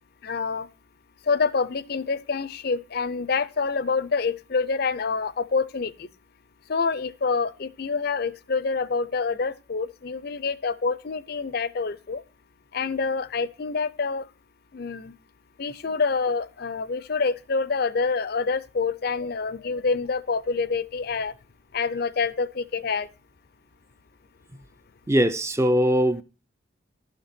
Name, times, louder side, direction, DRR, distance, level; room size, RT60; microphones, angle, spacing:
voice 1, 0.2-0.7 1.3-6.1 6.7-12.2 12.7-14.3 14.7-15.1 15.6-21.3 21.7-23.1, left 4 dB, 50° left, 0.5 m, -27 dB
voice 2, 25.1-26.2, equal, 15° right, 0.4 m, -21 dB
12.0 x 5.9 x 4.1 m
head